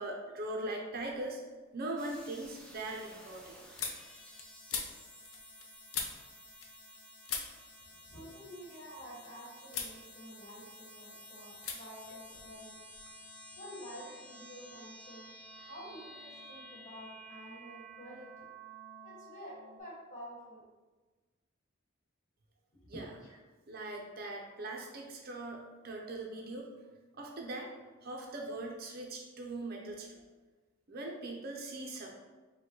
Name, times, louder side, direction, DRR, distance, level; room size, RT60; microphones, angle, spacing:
voice 1, 0.0-1.4 1.7-3.6 22.9-23.1 23.7-26.7 27.2-27.7 28.0-30.2 30.9-32.1, right 2 dB, 50° right, 0 dB, 0.6 m, -40 dB
sound 1, 1.0-1.6 1.9-7.0 7.2-9.3 9.7-10.0 10.3-11.1 11.6-11.8 12.0-13.1, left 6 dB, 85° left, 0.6 m, -43 dB
sound 2, 2.0-19.8, right 1 dB, 5° left, 0.5 m, -53 dB
voice 2, 8.0-12.8 13.1-13.3 13.6-15.3 15.5-18.5 19.0-20.6 22.9-23.4, equal, 40° left, -6 dB, 1.5 m, -49 dB
5.2 x 2.3 x 3.7 m, 1.3 s
head